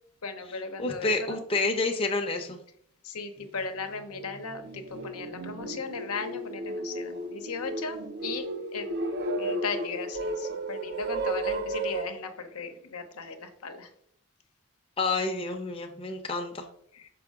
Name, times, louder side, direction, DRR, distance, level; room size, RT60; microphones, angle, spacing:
voice 1, 0.2-1.4 3.0-13.9 16.9-17.1, left 4 dB, 85° left, 7 dB, 0.8 m, -37 dB
voice 2, 0.8-2.6 15.0-16.7, left 3 dB, 25° left, 3 dB, 0.6 m, -29 dB
sound 1, 3.4-3.5 4.0-12.0, right 2 dB, 45° right, 0.5 m, -34 dB
6.3 x 4.9 x 3.5 m, 0.68 s
head